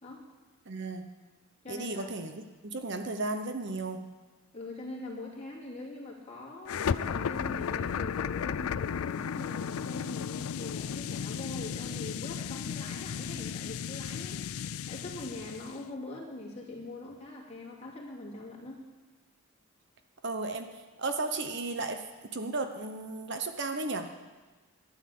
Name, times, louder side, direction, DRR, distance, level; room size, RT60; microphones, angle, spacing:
voice 1, 0.7-1.1 1.7-4.1 20.2-24.1, right 3 dB, 50° right, 7 dB, 0.9 m, -35 dB
voice 2, 1.6-2.1 4.5-18.8, left 2 dB, 30° left, -3 dB, 2.8 m, -42 dB
sound 1, 6.7-15.8, left 7 dB, 75° left, 0.4 m, -34 dB
13.0 x 9.9 x 7.7 m, 1.3 s
head